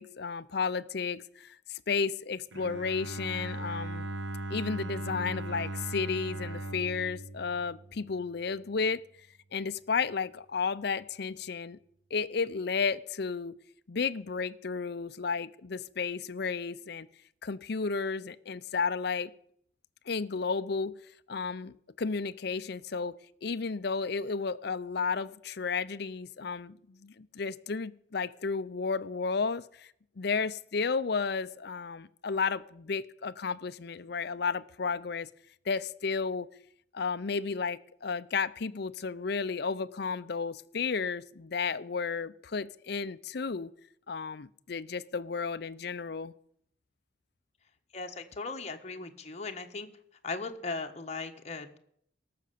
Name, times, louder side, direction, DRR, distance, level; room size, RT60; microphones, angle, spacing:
voice 1, 0.0-4.0 4.5-9.0 9.5-11.8 12.1-13.6 13.9-17.1 17.4-19.3 20.1-20.9 21.3-35.3 35.7-36.5 36.9-43.7 44.1-46.3, left 5 dB, 60° left, 16 dB, 0.6 m, -33 dB
Bowed string instrument, 2.5-8.4, right 2 dB, 80° right, 1.2 m, -38 dB
voice 2, 47.9-49.9 50.2-51.8, left 3 dB, 35° left, 5 dB, 1.3 m, -38 dB
17.5 x 6.7 x 8.5 m, 0.68 s
head